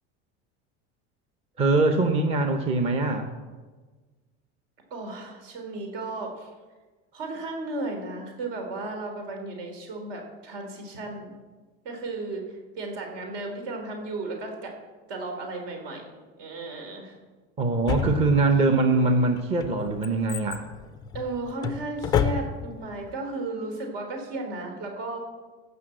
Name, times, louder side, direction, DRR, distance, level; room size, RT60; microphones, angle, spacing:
voice 1, 1.6-3.3 17.6-20.6, right 3 dB, 20° right, 6 dB, 0.7 m, -22 dB
voice 2, 4.9-6.5 7.1-11.3 11.8-14.8 15.1-16.0 16.4-17.2 21.1-25.2, right 2 dB, 70° right, 3 dB, 3.7 m, -34 dB
Drawer open or close, 17.9-18.7 19.4-22.8 23.1-23.2, left 8 dB, 15° left, 0.3 m, -29 dB
16.0 x 6.1 x 7.7 m, 1.3 s
cardioid pair, 175°, 30 cm